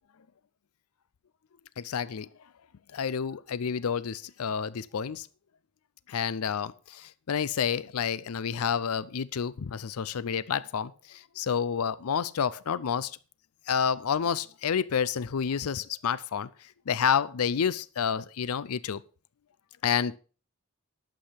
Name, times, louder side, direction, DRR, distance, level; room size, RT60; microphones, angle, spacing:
voice 1, 1.8-2.3 2.9-5.3 6.1-13.2 13.7-16.5 16.9-19.0 19.8-20.2, left 7 dB, 90° left, 0.5 m, -29 dB
11.5 x 7.6 x 5.7 m
head